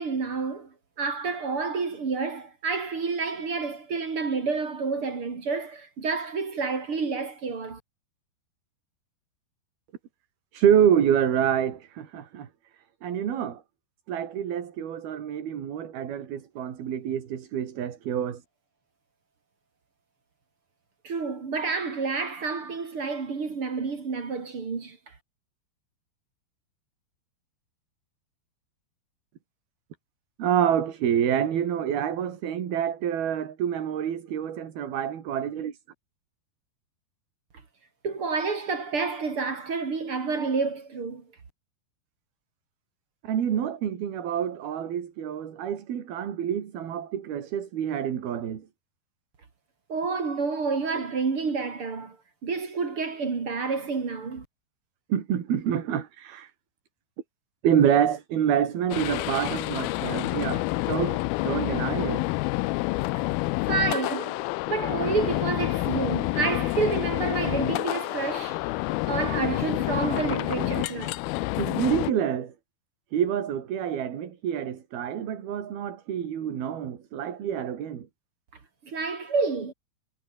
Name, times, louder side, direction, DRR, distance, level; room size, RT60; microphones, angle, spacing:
voice 1, 0.0-7.8 21.0-25.1 38.0-41.3 49.9-52.2 52.4-54.4 63.2-63.3 63.7-64.4 64.7-68.6 69.1-71.2 78.8-79.7, right 4 dB, 35° right, 3.4 m, -29 dB
voice 2, 10.5-12.5 13.0-13.6 14.1-18.4 30.4-35.8 43.2-48.7 55.1-56.5 57.6-62.3 70.6-70.9 71.6-72.5 73.1-78.1, right 9 dB, 65° right, 4.4 m, -27 dB
sound 1, 58.9-72.1, left 21 dB, 85° left, 2.2 m, -28 dB
omnidirectional pair, 4.9 m